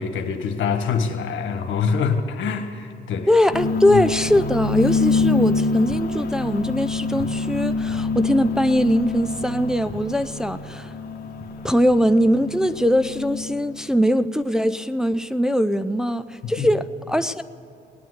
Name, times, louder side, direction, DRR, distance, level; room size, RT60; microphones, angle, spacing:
voice 1, 0.0-3.3 3.9-4.0 16.6-16.7, left 6 dB, 75° left, 6 dB, 1.7 m, -25 dB
voice 2, 3.3-10.9 11.6-17.4, equal, 5° right, 10 dB, 0.5 m, -21 dB
sound 1, 3.5-13.8, left 3 dB, 50° left, 1.7 m, -26 dB
19.0 x 9.3 x 8.0 m, 2.7 s
cardioid pair, 90°, 20 cm